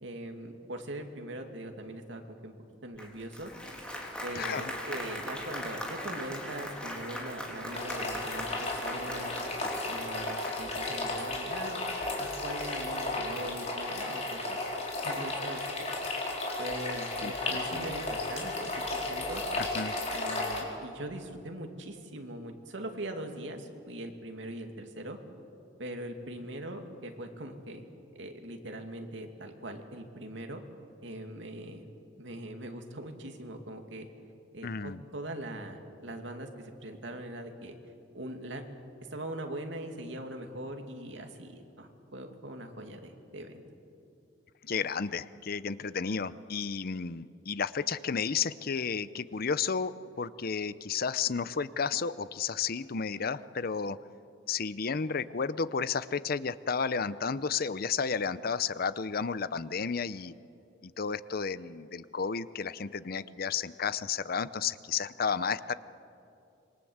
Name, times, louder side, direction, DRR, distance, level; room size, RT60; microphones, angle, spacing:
voice 1, 0.0-2.5 2.8-3.5 4.2-9.3 9.9-11.8 12.1-14.6 15.0-15.9 16.6-19.4 20.1-25.2 25.8-27.8 28.1-30.6 31.0-31.8 32.2-34.1 34.5-37.8 38.1-38.6 39.1-43.6, right 1 dB, 75° right, 4 dB, 2.5 m, -41 dB
Applause, 3.0-10.9, equal, 5° left, 3.5 m, -40 dB
voice 2, 4.3-4.7 17.2-17.3 17.7-18.0 19.6-20.0 34.6-35.0 44.6-54.0 54.5-60.3 60.8-65.7, left 5 dB, 55° left, 16 dB, 0.7 m, -32 dB
sound 1, 7.7-20.6, left 2 dB, 35° left, 4.5 m, -34 dB
26.5 x 22.5 x 8.0 m, 2.6 s
head